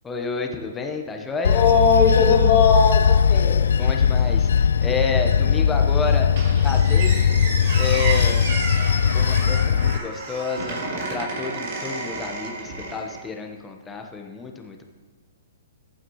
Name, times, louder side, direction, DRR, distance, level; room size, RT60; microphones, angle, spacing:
voice 1, 0.0-1.7 3.8-6.3 6.6-7.2 7.8-8.6 9.1-14.8, left 4 dB, 15° left, 3 dB, 1.2 m, -30 dB
Bell / Train, 1.4-10.0, left 7 dB, 75° left, 0.3 m, -19 dB
voice 2, 1.4-3.6, left 5 dB, 45° left, -2 dB, 3.0 m, -19 dB
Squeak, 6.4-13.2, right 3 dB, 55° right, 3.5 m, -31 dB
15.0 x 8.9 x 3.2 m, 1.4 s
hypercardioid pair, 130°, 0 cm